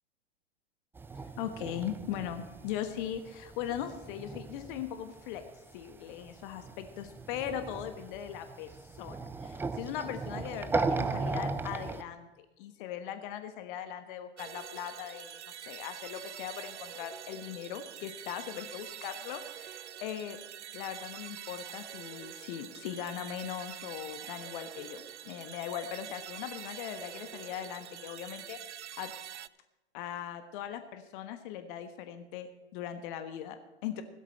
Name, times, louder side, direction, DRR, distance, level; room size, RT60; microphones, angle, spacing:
sound 1, 1.0-5.5 5.7-12.0, right 3 dB, 5° right, 0.5 m, -37 dB
voice 1, 1.4-5.4 5.7-20.4 20.7-28.6 29.0-29.1 29.9-34.0, left 10 dB, 50° left, 9 dB, 1.4 m, -39 dB
sound 2, 14.4-29.5, right 10 dB, 85° right, 0.5 m, -45 dB
16.0 x 13.0 x 4.3 m, 1.0 s
hypercardioid pair, 105°, 33 cm